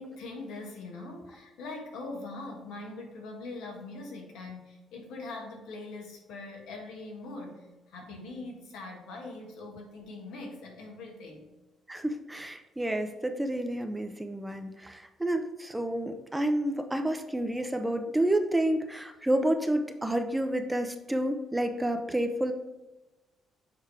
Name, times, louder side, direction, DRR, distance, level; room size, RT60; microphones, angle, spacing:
voice 1, 0.0-11.5 17.8-17.9, left 2 dB, 80° left, 0 dB, 1.5 m, -42 dB
voice 2, 11.9-22.5, right 1 dB, 10° right, 6 dB, 0.6 m, -29 dB
6.8 x 3.0 x 4.8 m, 1.1 s
supercardioid pair, 75°, 0 cm